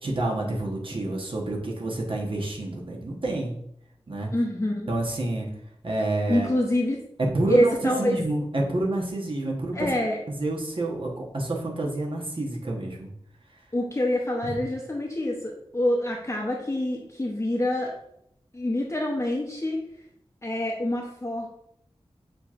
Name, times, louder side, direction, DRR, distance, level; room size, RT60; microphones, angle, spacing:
voice 1, 0.0-3.5 4.1-4.3 4.9-5.5 5.8-6.5 7.3-9.9 10.3-13.1 14.4-14.6, right 2 dB, 55° right, -1 dB, 1.0 m, -28 dB
voice 2, 4.3-4.9 6.3-7.0 7.5-8.2 9.7-10.2 13.7-17.9 18.5-19.8 20.4-21.5, left 1 dB, 25° left, -2 dB, 0.7 m, -26 dB
6.6 x 2.9 x 2.4 m, 0.75 s
wide cardioid pair, 65°, 11 cm